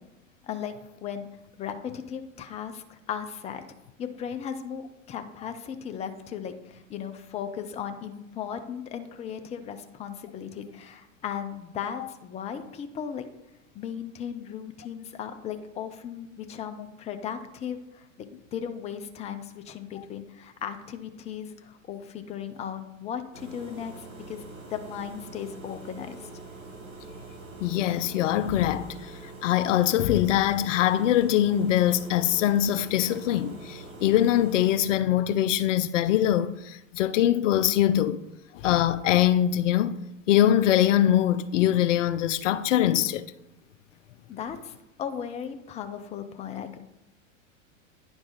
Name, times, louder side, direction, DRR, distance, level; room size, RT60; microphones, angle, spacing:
voice 1, 0.4-1.3 1.6-3.6 4.0-4.8 5.1-13.2 13.7-18.1 18.5-24.4 24.7-26.3 44.3-46.8, left 8 dB, 15° left, 0.5 m, -36 dB
sound 1, 23.3-34.8, right 3 dB, 75° right, 1.9 m, -44 dB
voice 2, 27.6-28.9 29.4-38.2 38.6-40.0 40.3-43.2, left 12 dB, 65° left, 0.5 m, -23 dB
9.6 x 4.7 x 3.8 m
hypercardioid pair, 95°, 39 cm